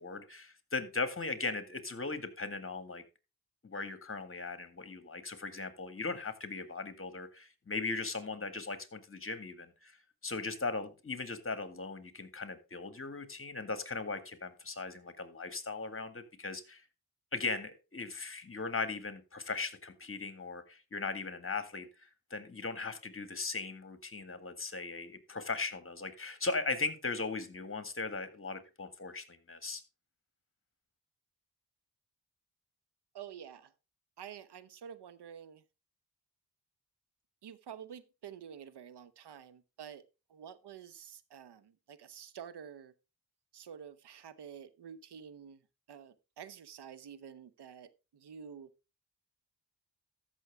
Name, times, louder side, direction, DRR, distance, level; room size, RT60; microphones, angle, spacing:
voice 1, 0.0-3.0 3.6-10.0 10.2-16.8 17.3-29.8, left 3 dB, 30° left, 1.9 m, -38 dB
voice 2, 33.1-33.7 34.2-35.6 37.4-40.0 40.3-42.9 43.5-45.6 45.9-48.7, right 8 dB, 75° right, 1.0 m, -49 dB
14.0 x 6.3 x 3.5 m
cardioid pair, 60°, 40 cm